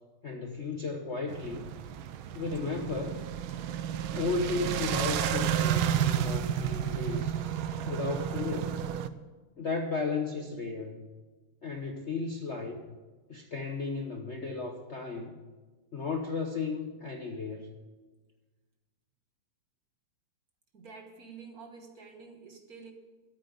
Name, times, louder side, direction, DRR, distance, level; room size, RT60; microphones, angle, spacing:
voice 1, 0.2-1.6 2.3-3.2 4.1-7.3 7.9-8.8 9.6-11.0 11.6-12.8 13.3-15.4 15.9-17.7, left 4 dB, 45° left, 3 dB, 1.0 m, -34 dB
sound 1, 1.3-9.1, right 10 dB, 70° right, 1.4 m, -31 dB
voice 2, 20.7-22.9, right 5 dB, 45° right, 4 dB, 1.8 m, -48 dB
13.0 x 8.7 x 8.3 m, 1.3 s
omnidirectional pair, 2.4 m